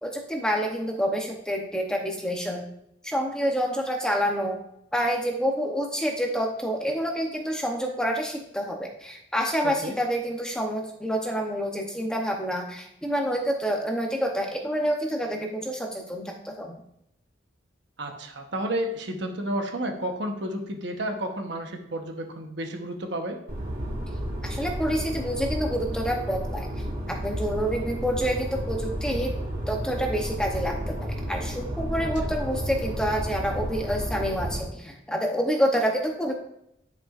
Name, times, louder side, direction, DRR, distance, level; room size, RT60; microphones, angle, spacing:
voice 1, 0.0-2.6 3.0-4.6 4.9-16.8 24.4-26.7 27.1-29.3 29.7-36.3, equal, 5° left, 1 dB, 0.8 m, -28 dB
voice 2, 9.6-10.0 18.0-23.4 32.0-32.3, right 1 dB, 70° right, 4 dB, 1.0 m, -31 dB
sound 1, 23.5-34.6, equal, 50° right, 2.8 m, -32 dB
10.0 x 5.8 x 2.5 m, 0.77 s
head